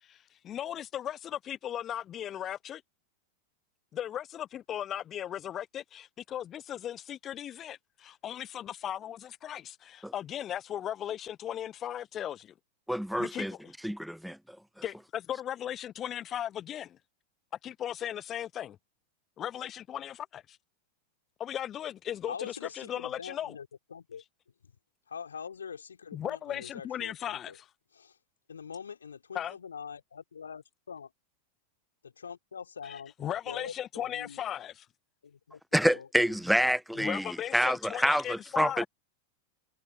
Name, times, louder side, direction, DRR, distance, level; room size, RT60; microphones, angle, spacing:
voice 1, 0.1-2.8 3.9-12.5 13.2-13.7 14.8-17.0 17.6-18.8 19.4-20.6 21.4-23.6 26.1-27.6 29.3-29.5 32.8-34.9 37.0-38.9, left 10 dB, 30° left, 1.0 m, -37 dB
voice 2, 12.9-13.5 13.8-14.4 35.7-38.9, equal, ahead, 1.0 m, -27 dB
voice 3, 22.3-24.2 24.6-24.7 25.1-27.6 27.9-28.2 28.5-31.1 32.0-34.4 35.2-35.6 35.9-36.4 36.6-36.7, left 6 dB, 70° left, 4.5 m, -44 dB
figure-of-eight pair, 90°, 0 cm